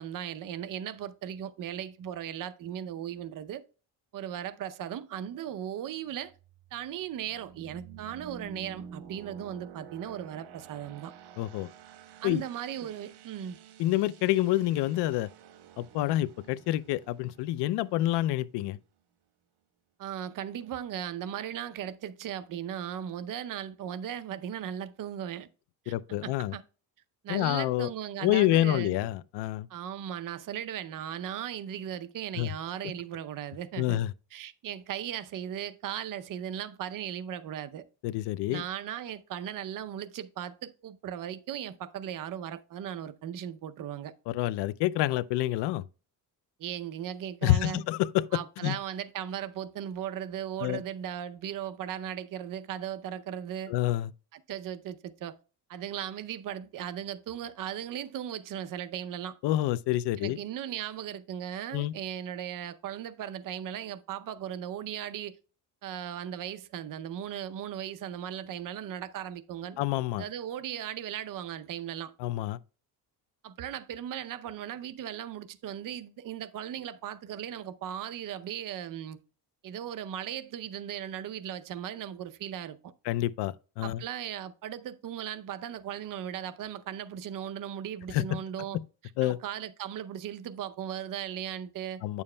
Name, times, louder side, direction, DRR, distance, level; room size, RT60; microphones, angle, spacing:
voice 1, 0.0-3.6 4.1-6.3 6.7-11.1 12.2-13.6 20.0-25.5 25.9-26.6 27.2-29.0 29.7-34.0 34.3-37.8 38.5-44.1 46.6-47.8 48.3-53.7 54.3-55.4 55.7-59.4 60.2-65.4 65.8-69.8 70.2-72.1 73.4-79.2 79.6-82.9 83.8-88.8 89.2-92.0, right 10 dB, 55° right, 0.6 m, -37 dB
sound 1, 6.2-18.8, right 8 dB, 85° right, 1.1 m, -50 dB
voice 2, 11.4-11.7 12.2-12.4 13.8-15.3 15.8-18.8 25.9-26.5 27.3-27.9 28.2-29.7 32.4-32.5 33.8-34.1 38.0-38.6 44.3-45.8 47.4-48.2 48.6-48.8 50.6-50.8 53.7-54.1 59.4-60.4 61.7-61.9 69.8-70.2 72.2-72.6 83.1-84.0 88.1-88.2 89.2-89.4 92.0-92.2, left 15 dB, 90° left, 0.5 m, -27 dB
9.5 x 7.1 x 2.2 m
cardioid pair, 150°, 40 cm